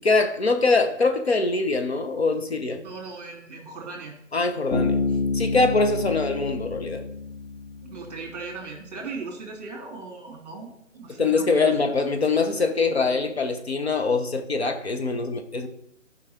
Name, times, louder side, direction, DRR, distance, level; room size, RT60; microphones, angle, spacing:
voice 1, 0.0-2.9 4.3-5.0 5.3-7.0 11.2-15.7, left 3 dB, 50° left, 5 dB, 1.1 m, -23 dB
voice 2, 2.8-4.1 7.8-10.7 10.9-11.7, right 4 dB, 30° right, 0 dB, 3.1 m, -38 dB
Bass guitar, 4.7-8.2, left 3 dB, 30° left, 2.3 m, -28 dB
14.0 x 5.8 x 4.3 m, 0.77 s
figure-of-eight pair, 155°, 40 cm